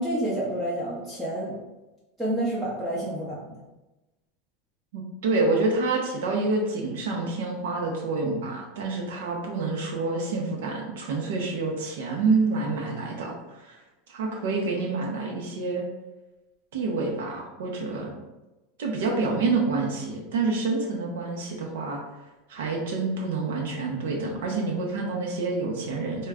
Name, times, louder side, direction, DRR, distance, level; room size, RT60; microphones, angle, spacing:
voice 1, 0.0-1.6 2.2-3.5, right 1 dB, 5° right, -7 dB, 0.4 m, -29 dB
voice 2, 4.9-13.8 14.1-15.9 16.7-18.1 18.8-22.0 22.5-26.3, right 3 dB, 90° right, -1 dB, 0.7 m, -27 dB
3.6 x 2.2 x 3.4 m, 1.1 s
supercardioid pair, 175°, 0 cm